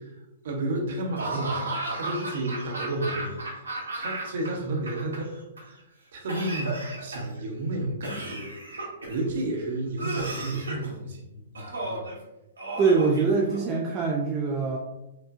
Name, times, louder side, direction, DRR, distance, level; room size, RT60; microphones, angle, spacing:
voice 1, 0.4-3.4 3.9-5.3 5.6-5.8 6.1-12.1, right 2 dB, 55° right, 1 dB, 0.8 m, -32 dB
Laughter / Cough, 1.2-4.5 4.7-5.6 6.3-7.4 8.0-9.2 10.0-10.9 11.5-12.1 12.6-13.8, right 2 dB, 80° right, 1.1 m, -34 dB
voice 2, 12.8-14.8, right 4 dB, 25° right, 0 dB, 0.4 m, -23 dB
4.7 x 2.4 x 2.4 m, 0.93 s
figure-of-eight pair, 115°, 0 cm